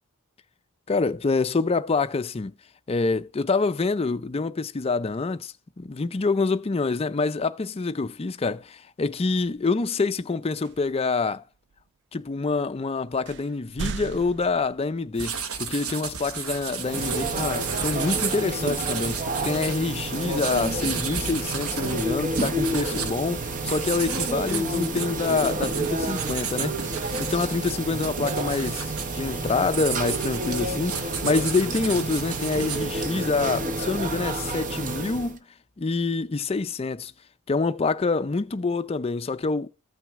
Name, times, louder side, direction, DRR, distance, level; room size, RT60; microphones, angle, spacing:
voice 1, 0.9-2.5 2.9-11.4 12.1-26.8 27.2-35.4 35.8-37.1 37.5-39.7, left 4 dB, 25° left, 0.4 m, -26 dB
sound 1, 9.3-9.6 10.6-11.0 11.7-11.8 12.6-12.7 13.3-15.2, right 6 dB, 50° right, 0.3 m, -37 dB
sound 2, 15.2-33.3, right 6 dB, 70° right, 1.1 m, -34 dB
sound 3, 16.7-35.4, right 2 dB, 35° right, 0.8 m, -30 dB
14.0 x 6.1 x 3.6 m
head